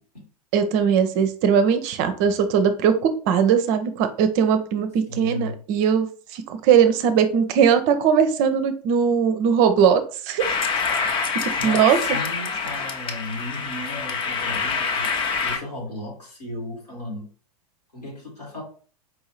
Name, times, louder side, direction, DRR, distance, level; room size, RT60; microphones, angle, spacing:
voice 1, 0.5-6.1 6.3-10.4 11.6-12.2, right 7 dB, 40° right, 10 dB, 0.5 m, -20 dB
voice 2, 5.1-5.6 11.6-15.1 15.4-17.3 17.9-18.6, left 1 dB, 85° left, -2 dB, 2.1 m, -35 dB
sound 1, 10.4-15.6, left 5 dB, 25° left, 0.6 m, -26 dB
4.6 x 2.7 x 3.0 m, 0.41 s
figure-of-eight pair, 95°, 20 cm